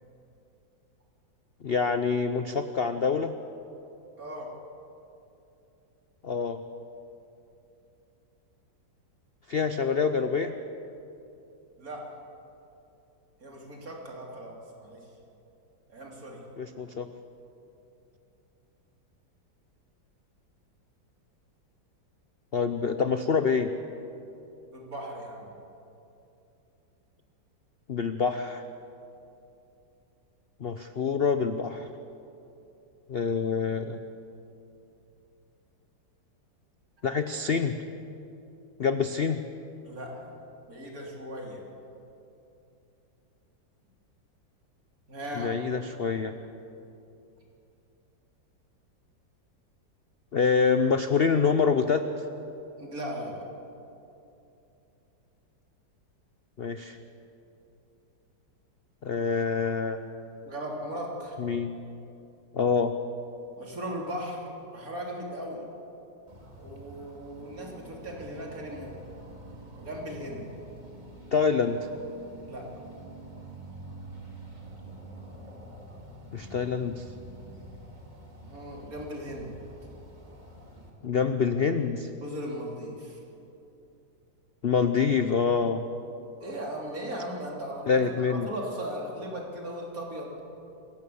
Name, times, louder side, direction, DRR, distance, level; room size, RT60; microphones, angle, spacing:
voice 1, 1.6-3.3 6.2-6.6 9.5-10.5 16.6-17.1 22.5-23.7 27.9-28.6 30.6-31.9 33.1-34.0 37.0-37.8 38.8-39.4 45.4-46.4 50.3-52.3 56.6-57.0 59.0-60.3 61.4-61.7 62.5-62.9 71.3-71.8 76.3-77.0 81.0-82.1 84.6-85.8 87.9-88.5, left 5 dB, 75° left, 9 dB, 0.5 m, -26 dB
voice 2, 4.2-4.5 11.8-12.1 13.4-15.0 15.9-16.4 24.7-25.5 39.8-40.3 40.7-41.6 45.1-45.6 52.8-53.4 60.5-61.4 63.6-64.4 64.7-65.7 66.6-69.0 69.8-70.5 72.4-72.7 78.5-79.5 82.2-83.2 86.4-90.5, equal, 45° right, -1 dB, 3.7 m, -37 dB
sound 1, 66.3-80.9, right 2 dB, 25° right, 2.5 m, -47 dB
27.0 x 15.5 x 7.1 m, 2.8 s
omnidirectional pair, 2.1 m